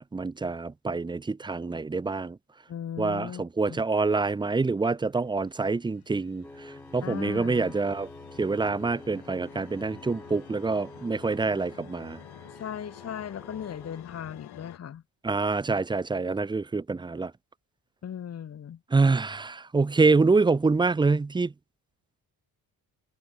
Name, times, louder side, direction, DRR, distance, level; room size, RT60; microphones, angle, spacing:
voice 1, 0.0-2.4 3.0-8.1 8.4-12.2 15.2-17.3 18.9-21.5, right 3 dB, 10° right, 0.6 m, -26 dB
voice 2, 2.7-3.4 3.7-3.8 7.0-7.7 12.5-15.0 18.0-18.8, left 9 dB, 40° left, 2.2 m, -37 dB
sound 1, 5.1-14.8, left 13 dB, 70° left, 5.3 m, -50 dB
sound 2, 6.4-14.0, left 1 dB, 5° left, 5.6 m, -48 dB
cardioid pair, 170°, 40 cm